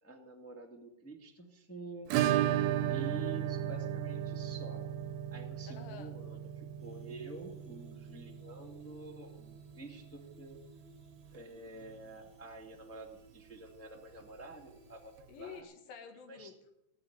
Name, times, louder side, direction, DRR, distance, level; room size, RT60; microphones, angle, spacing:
voice 1, 0.0-2.1 2.9-4.8 5.3-10.6 11.3-15.6 16.3-16.5, right 2 dB, 5° left, 2 dB, 1.1 m, -48 dB
Acoustic guitar / Strum, 2.1-10.7 11.0-11.1 11.3-11.4 11.8-11.9 14.0-14.1 15.2-15.3, right 11 dB, 90° right, 2.6 m, -35 dB
voice 2, 5.7-6.1 15.3-16.7, left 7 dB, 85° left, 6 dB, 3.6 m, -49 dB
sound 1, 6.8-15.2, left 1 dB, 20° right, 2.0 m, -62 dB
18.0 x 8.0 x 9.3 m, 0.85 s
omnidirectional pair, 4.0 m